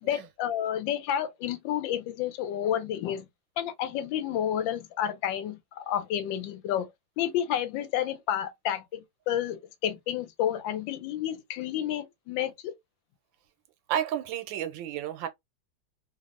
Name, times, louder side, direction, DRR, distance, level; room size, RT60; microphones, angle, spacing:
voice 1, 0.0-3.3 3.6-6.9 7.2-12.7, left 10 dB, 85° left, 1.3 m, -30 dB
voice 2, 13.9-15.3, right 10 dB, 90° right, 1.4 m, -31 dB
3.3 x 2.0 x 2.4 m
omnidirectional pair, 2.0 m